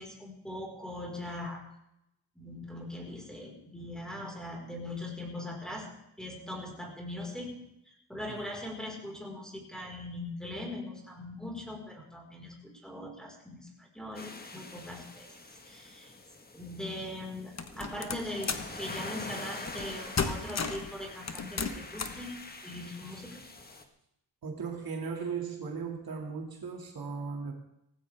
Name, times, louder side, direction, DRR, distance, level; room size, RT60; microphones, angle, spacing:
voice 1, 0.0-1.6 2.3-5.9 6.2-7.6 7.9-12.6 12.8-15.3 15.6-16.1 16.5-23.4, left 1 dB, ahead, 0 dB, 4.7 m, -41 dB
sound 1, 14.1-23.8, left 2 dB, 20° left, 1.5 m, -45 dB
sound 2, 17.6-18.7 19.7-19.9 20.2-20.9 21.3-22.2, left 5 dB, 40° left, 1.3 m, -33 dB
voice 2, 24.4-27.5, right 5 dB, 55° right, 1 dB, 2.4 m, -37 dB
18.5 x 15.5 x 3.5 m, 0.81 s
cardioid pair, 120°, 42 cm